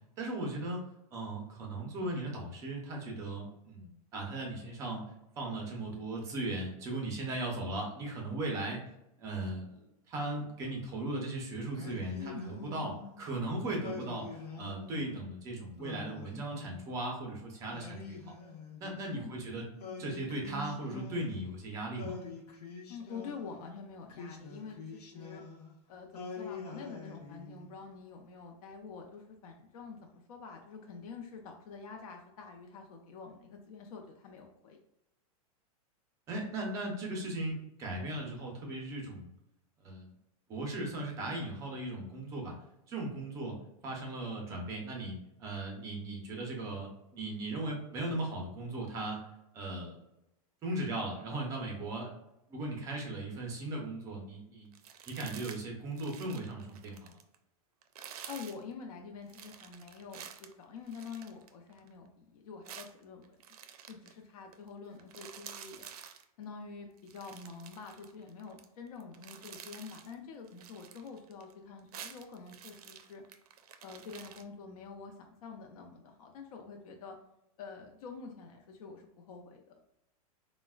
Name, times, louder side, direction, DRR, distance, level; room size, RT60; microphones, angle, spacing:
voice 1, 0.2-0.8 1.1-5.0 5.4-8.8 9.2-18.2 18.8-19.6 20.0-22.2 36.3-39.3 39.8-40.1 40.5-42.5 42.9-43.6 43.8-49.2 49.5-50.0 50.6-52.1 52.5-54.7 55.1-57.2, right 2 dB, 15° right, 0 dB, 0.4 m, -37 dB
Singing, 11.7-13.2 13.8-15.2 15.8-17.1 17.7-19.2 19.8-21.6 22.0-23.6 24.1-25.7 26.1-27.8, left 4 dB, 85° left, 0.8 m, -45 dB
voice 2, 12.1-12.6 19.1-19.4 22.9-25.4 25.9-34.8 58.3-63.4 63.9-65.9 66.4-73.2 73.8-77.2 77.6-79.8, left 5 dB, 70° left, 2 dB, 0.5 m, -47 dB
sound 1, 54.7-55.6 55.9-57.4 57.8-58.6 59.3-61.9 62.7-64.1 64.5-64.7 65.0-66.2 67.0-68.7 69.0-70.1 70.5-71.5 71.8-74.4, right 8 dB, 75° right, 0.4 m, -49 dB
3.9 x 2.0 x 2.3 m, 0.85 s
supercardioid pair, 170°, 19 cm